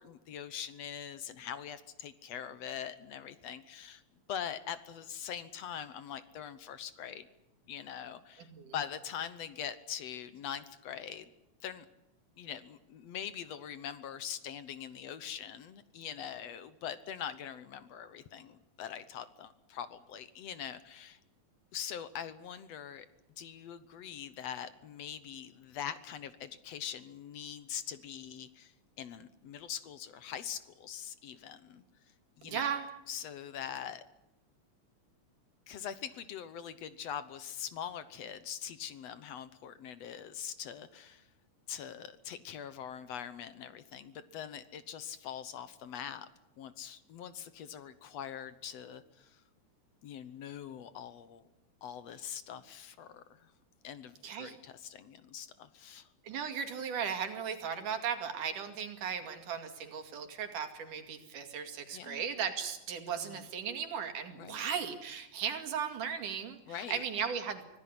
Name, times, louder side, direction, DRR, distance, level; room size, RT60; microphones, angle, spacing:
voice 1, 0.0-4.0 4.3-7.3 7.7-11.3 11.6-11.9 12.4-21.2 21.7-23.1 23.4-31.8 32.4-32.7 33.1-34.0 35.7-41.3 41.7-46.3 46.6-49.4 50.0-51.4 51.8-53.5 53.8-56.1 61.9-62.2 63.1-63.4 64.4-64.6 66.7-67.0, left 9 dB, 65° left, 13 dB, 1.9 m, -43 dB
voice 2, 32.4-32.9 54.2-54.6 56.2-67.6, right 7 dB, 90° right, 6 dB, 3.9 m, -36 dB
25.0 x 16.5 x 9.6 m, 0.93 s
omnidirectional pair, 3.5 m